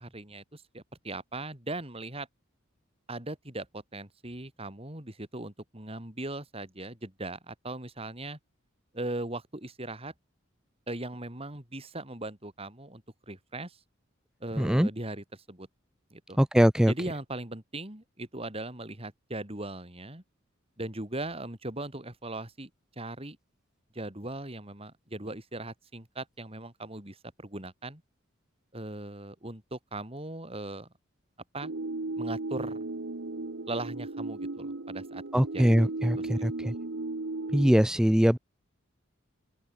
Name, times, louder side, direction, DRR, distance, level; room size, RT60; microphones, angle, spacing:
voice 1, 0.0-2.3 3.1-8.4 8.9-10.1 10.9-13.8 14.4-15.7 16.1-16.4 16.9-20.2 20.8-22.7 23.0-23.4 23.9-28.0 28.7-30.9 31.5-31.7 32.2-32.8 33.7-35.2 35.5-35.7 36.0-36.5, right 2 dB, 30° right, 3.6 m, -39 dB
voice 2, 14.6-14.9 16.4-16.9 35.3-36.7 37.5-38.4, equal, 5° right, 0.3 m, -22 dB
sound 1, 31.6-37.7, right 2 dB, 65° right, 1.1 m, -35 dB
open air
head